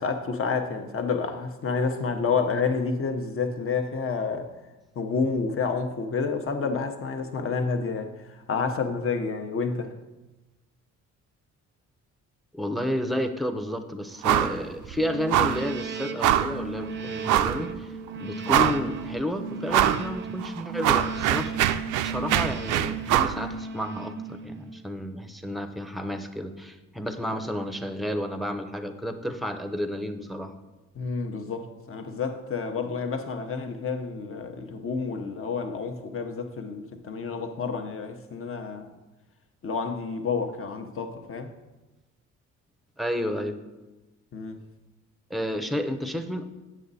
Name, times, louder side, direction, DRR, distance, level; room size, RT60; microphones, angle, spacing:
voice 1, 0.0-4.5 5.0-8.1 8.5-9.9 30.9-38.9 39.6-41.5 44.3-44.6, left 5 dB, 45° left, 1.0 m, -29 dB
voice 2, 12.5-17.9 18.2-21.5 22.0-30.6 43.0-43.6 45.3-46.4, equal, ahead, 0.7 m, -31 dB
sound 1, 14.2-14.6 14.8-15.0 15.3-15.7 16.2-16.6 17.2-17.6 18.1-18.2 18.5-19.0 19.7-20.0 20.4-23.4, right 11 dB, 85° right, 0.5 m, -23 dB
sound 2, 15.0-24.9, right 4 dB, 40° right, 0.6 m, -36 dB
8.3 x 6.2 x 4.1 m
cardioid pair, 90°, 30 cm